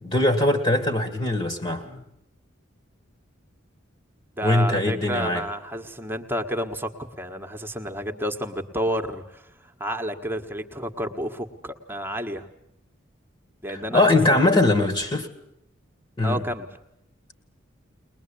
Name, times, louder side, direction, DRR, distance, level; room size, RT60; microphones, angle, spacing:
voice 1, 0.0-2.0 4.4-5.4 13.7-15.3 16.2-16.4, left 2 dB, 30° left, 8 dB, 2.0 m, -21 dB
voice 2, 4.4-9.4 9.8-12.5 13.6-14.7 16.2-16.7, equal, 10° right, 4 dB, 1.6 m, -30 dB
22.0 x 21.0 x 8.6 m, 0.80 s
head